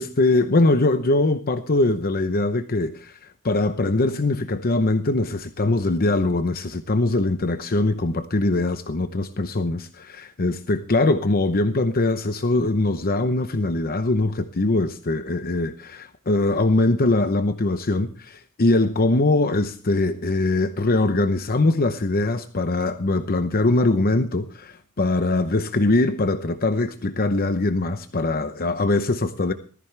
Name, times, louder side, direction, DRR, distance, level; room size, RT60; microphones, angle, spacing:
voice 1, 0.0-3.2 3.4-29.5, left 2 dB, 45° left, 0.8 m, -22 dB
18.5 x 14.5 x 3.3 m
head